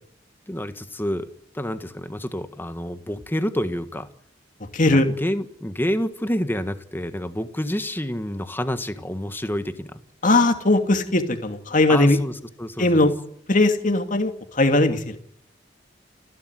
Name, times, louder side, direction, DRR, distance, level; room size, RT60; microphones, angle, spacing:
voice 1, 0.5-4.1 4.9-10.0 11.9-13.0, equal, 10° left, 9 dB, 1.7 m, -28 dB
voice 2, 4.7-5.1 10.2-12.2 12.8-13.1 13.5-15.2, left 2 dB, 45° left, 6 dB, 2.6 m, -19 dB
30.0 x 12.0 x 9.6 m, 0.70 s
head